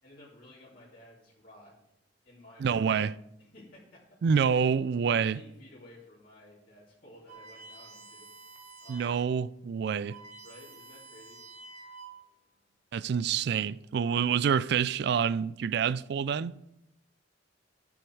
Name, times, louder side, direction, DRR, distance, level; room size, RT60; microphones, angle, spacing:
voice 1, 0.0-1.8 2.2-2.9 3.4-4.7 5.1-8.3 8.8-9.1 10.4-11.4 14.1-14.4, left 1 dB, 50° left, 2.9 m, -54 dB
voice 2, 2.6-3.1 4.2-5.4 8.9-10.2 12.9-16.5, right 7 dB, 60° right, 0.3 m, -27 dB
sound 1, 7.3-9.3 9.7-9.8 10.0-12.4, right 3 dB, 40° right, 1.4 m, -49 dB
11.5 x 7.2 x 4.6 m
head